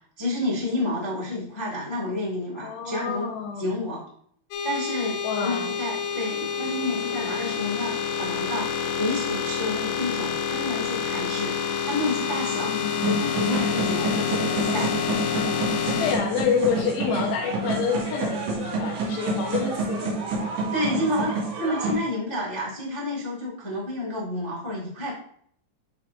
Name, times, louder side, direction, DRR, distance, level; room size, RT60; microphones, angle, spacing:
voice 1, 0.2-3.3 3.6-4.0 4.6-12.8 13.0-14.9 20.7-25.1, left 1 dB, 20° left, -6 dB, 0.7 m, -30 dB
voice 2, 2.6-3.6 5.2-5.8 12.6-13.2 16.0-20.1, left 6 dB, 70° left, 0 dB, 3.6 m, -28 dB
sound 1, 4.5-16.2, left 7 dB, 90° left, 3.5 m, -28 dB
sound 2, 13.0-21.9, right 3 dB, 75° right, 5.4 m, -29 dB
12.5 x 4.4 x 2.8 m, 0.63 s
omnidirectional pair, 5.8 m